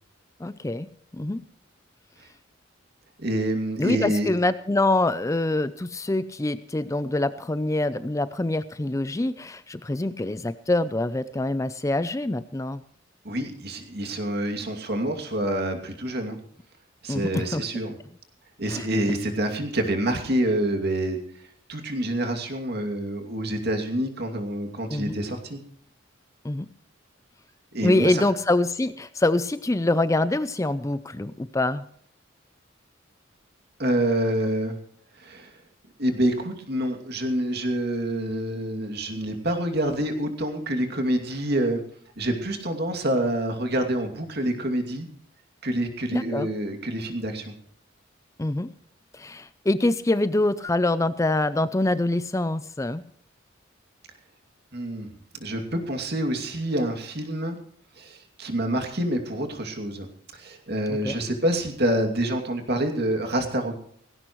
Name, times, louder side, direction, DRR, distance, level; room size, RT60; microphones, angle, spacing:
voice 1, 0.4-0.9 1.1-1.4 3.8-12.8 17.1-17.6 18.7-18.9 24.9-25.1 26.4-26.7 27.8-31.8 46.1-46.5 48.4-48.7 49.1-53.0 60.9-61.2, left 2 dB, 15° left, 14 dB, 0.4 m, -25 dB
voice 2, 3.2-4.3 13.2-16.4 17.0-18.0 18.6-21.2 21.7-25.6 27.7-28.3 33.8-34.7 35.1-35.6 36.0-41.8 42.2-45.1 45.6-47.5 54.7-55.1 55.4-57.6 58.0-60.1 60.3-63.8, right 1 dB, 55° right, 4 dB, 2.5 m, -27 dB
18.0 x 16.5 x 3.1 m, 0.63 s
head